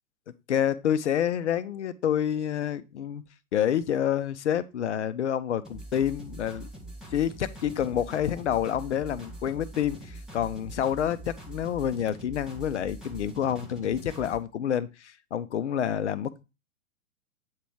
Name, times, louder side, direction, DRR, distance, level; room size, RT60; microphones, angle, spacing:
voice 1, 0.5-3.2 3.5-6.7 7.1-16.4, left 9 dB, 55° left, 0.6 m, -28 dB
sound 1, 5.6-14.4, right 1 dB, ahead, 0.5 m, -43 dB
8.3 x 3.0 x 4.6 m
figure-of-eight pair, 110°, 42 cm